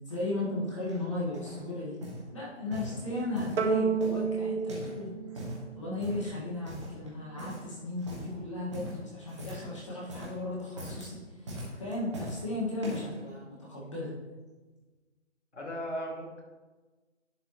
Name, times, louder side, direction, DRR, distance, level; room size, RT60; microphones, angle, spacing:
voice 1, 0.1-2.0 2.3-5.1 5.8-14.1, left 2 dB, 25° left, -6 dB, 1.8 m, -35 dB
sound 1, 0.9-1.6 2.0-2.3 2.7-3.6 4.0-5.0 5.2-5.6 6.0-6.3 6.7-7.1 7.4-7.7 8.0-8.3 8.7-9.7 10.0-10.4 10.7-11.1 11.5-12.4 12.8-13.2 13.8-13.9, equal, 25° right, 1.6 m, -41 dB
sound 2, 3.6-6.2, right 5 dB, 70° right, 0.8 m, -30 dB
voice 2, 15.5-16.4, equal, 70° left, -2 dB, 2.5 m, -36 dB
10.5 x 5.6 x 3.1 m, 1.3 s
hypercardioid pair, 175°, 36 cm